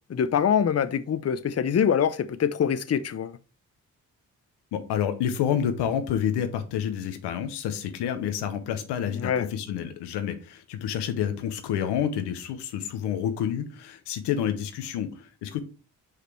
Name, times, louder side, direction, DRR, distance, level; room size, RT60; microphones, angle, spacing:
voice 1, 0.1-3.4 9.1-9.5, left 8 dB, 40° left, 0.7 m, -24 dB
voice 2, 4.7-15.6, left 9 dB, 90° left, 0.8 m, -29 dB
5.1 x 4.9 x 4.5 m
supercardioid pair, 45°, 40 cm